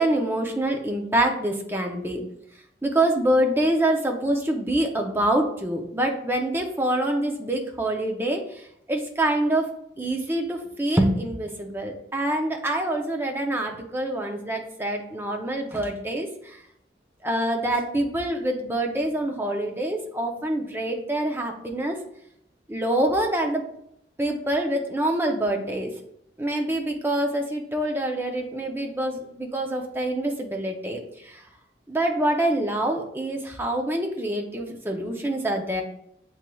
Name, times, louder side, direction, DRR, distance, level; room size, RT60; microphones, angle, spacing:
voice 1, 0.0-2.2 2.8-9.7 10.0-16.6 17.2-22.0 22.7-23.6 24.2-25.9 26.4-31.4 31.9-35.8, right 1 dB, 15° right, 2 dB, 0.5 m, -26 dB
7.2 x 3.1 x 2.2 m, 0.75 s
head